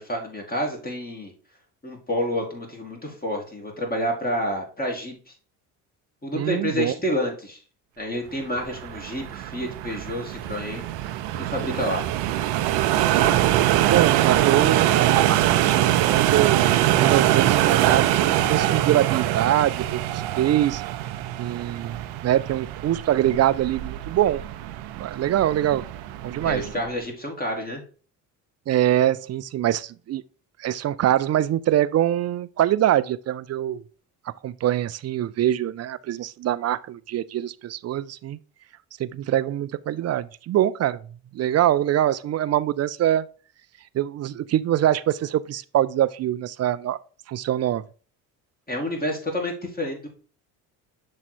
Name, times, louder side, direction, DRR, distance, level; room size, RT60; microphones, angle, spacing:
voice 1, 0.0-1.3 1.8-5.3 6.2-7.6 8.0-10.8 11.3-12.0 26.4-27.8 48.7-50.1, equal, 20° left, 2.1 m, -29 dB
voice 2, 6.3-6.9 13.8-16.6 17.0-20.8 21.4-24.5 24.9-25.8 26.2-26.6 28.7-30.2 30.6-33.8 34.4-38.4 39.0-41.0 41.3-43.2 43.9-47.0 47.3-47.8, right 12 dB, 40° right, 0.4 m, -24 dB
sound 1, 8.6-26.9, right 13 dB, 80° right, 0.7 m, -23 dB
7.0 x 3.2 x 4.2 m
supercardioid pair, 75°, 40 cm